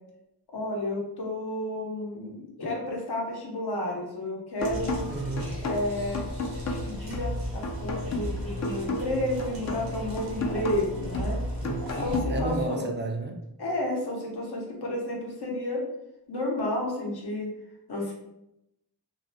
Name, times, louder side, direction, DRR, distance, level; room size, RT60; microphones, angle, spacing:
voice 1, 0.5-5.1 5.6-6.2 6.8-11.4 12.0-12.9 13.6-15.8 16.3-17.5 17.9-18.1, left 1 dB, 70° left, -1 dB, 0.8 m, -31 dB
sound 1, 4.6-12.6, left 1 dB, 45° left, 0.4 m, -33 dB
sound 2, 4.6-12.2, left 1 dB, 60° right, 0.7 m, -37 dB
voice 2, 5.1-5.5 11.6-13.4, right 2 dB, 30° right, 3 dB, 0.4 m, -32 dB
2.4 x 2.0 x 2.6 m, 0.83 s
wide cardioid pair, 60°, 41 cm